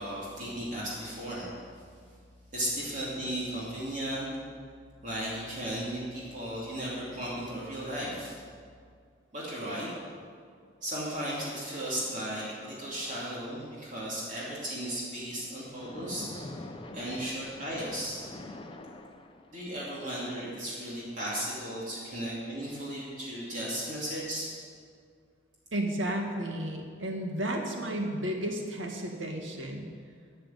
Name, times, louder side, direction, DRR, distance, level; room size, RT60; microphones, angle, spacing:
voice 1, 0.0-1.6 2.5-4.3 5.0-8.4 9.3-9.9 10.8-16.7 16.9-18.2 19.5-24.5, right 1 dB, 40° right, -6 dB, 3.0 m, -35 dB
Splash splatter, 15.7-19.8, left 2 dB, 25° left, 0.7 m, -44 dB
voice 2, 25.7-29.9, right 1 dB, 80° right, 2 dB, 2.0 m, -33 dB
13.0 x 6.7 x 9.4 m, 2.1 s
head